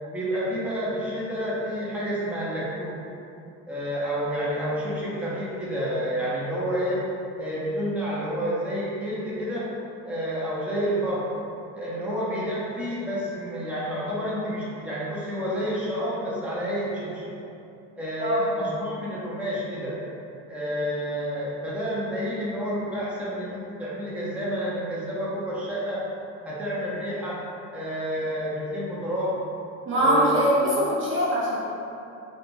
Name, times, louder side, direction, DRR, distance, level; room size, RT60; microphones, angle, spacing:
voice 1, 0.0-3.0 3.7-7.0 7.4-9.7 10.0-11.2 11.7-17.3 17.9-19.9 20.5-26.0 26.4-27.4 27.7-29.3 30.0-30.5, equal, 5° right, -8 dB, 0.9 m, -29 dB
voice 2, 18.2-18.5 29.9-31.6, equal, 30° right, -7 dB, 0.8 m, -22 dB
3.4 x 2.5 x 2.6 m, 2.7 s
hypercardioid pair, 80°, 39 cm